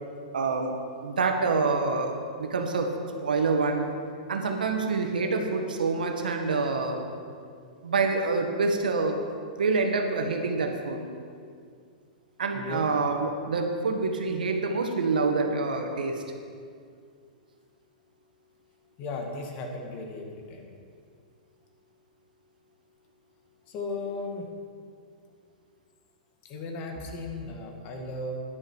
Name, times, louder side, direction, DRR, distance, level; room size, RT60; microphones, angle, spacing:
voice 1, 0.3-0.7 1.0-2.1 2.4-2.9 3.2-3.9 4.3-7.0 7.8-9.2 9.6-11.1 12.4-16.2, right 4 dB, 90° right, 4 dB, 1.6 m, -26 dB
voice 2, 12.5-13.0 19.0-20.7 23.7-24.5 26.5-28.4, left 2 dB, 40° left, 2 dB, 2.0 m, -36 dB
13.0 x 10.5 x 4.8 m, 2.2 s
hypercardioid pair, 130°, 5 cm